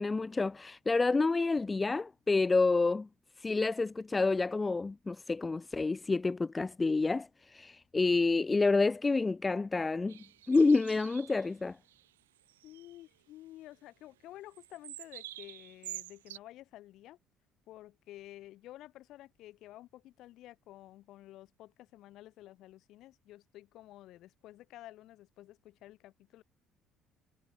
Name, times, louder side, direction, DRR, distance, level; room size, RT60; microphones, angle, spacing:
voice 1, 0.0-3.1 3.4-10.2 10.5-11.8, left 3 dB, 20° left, 0.7 m, -28 dB
sound 1, 10.1-11.5 11.9-12.1 12.4-13.0 14.5-16.4, right 14 dB, 75° right, 3.3 m, -48 dB
voice 2, 12.6-17.2 17.7-26.4, left 15 dB, 60° left, 7.0 m, -52 dB
figure-of-eight pair, 55°, 0 cm